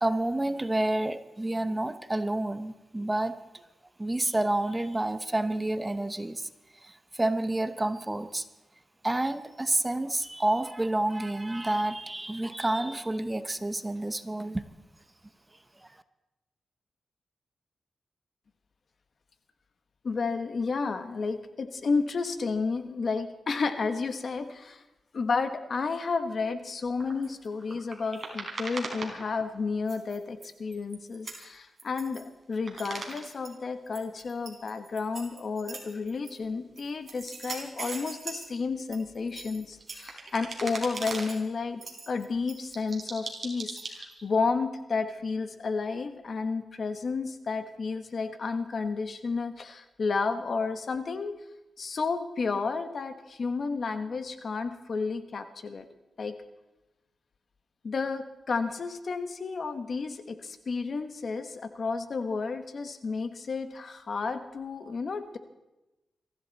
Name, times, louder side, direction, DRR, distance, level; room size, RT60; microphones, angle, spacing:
voice 1, 0.0-3.4 4.0-6.5 6.8-8.5 9.0-14.7 15.8-15.9, right 1 dB, 15° right, 11 dB, 0.9 m, -29 dB
voice 2, 20.0-24.8 25.1-41.8 42.1-51.3 51.8-55.9 56.2-56.3 57.8-65.4, left 4 dB, 55° left, 9 dB, 1.3 m, -31 dB
sound 1, 27.0-29.6 29.9-32.2 32.5-33.5 33.9-36.4 36.8-38.5 38.8-41.4 41.8-44.2, right 3 dB, 45° right, 4.1 m, -40 dB
23.0 x 14.5 x 4.2 m, 1.0 s
cardioid pair, 85°, 0 cm